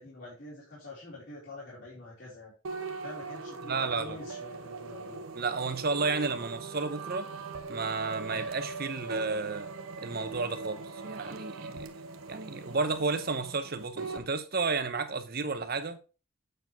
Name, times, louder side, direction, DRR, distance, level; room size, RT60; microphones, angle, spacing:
voice 1, 0.0-2.5 3.0-5.2 8.3-8.5, left 2 dB, 55° left, 3.0 m, -46 dB
sound 1, 2.6-14.3, right 4 dB, 90° right, 1.0 m, -41 dB
voice 2, 3.6-4.2 5.3-7.3 7.7-9.7 10.0-11.9 12.3-16.0, right 4 dB, 45° right, 0.9 m, -32 dB
7.7 x 4.7 x 4.5 m
head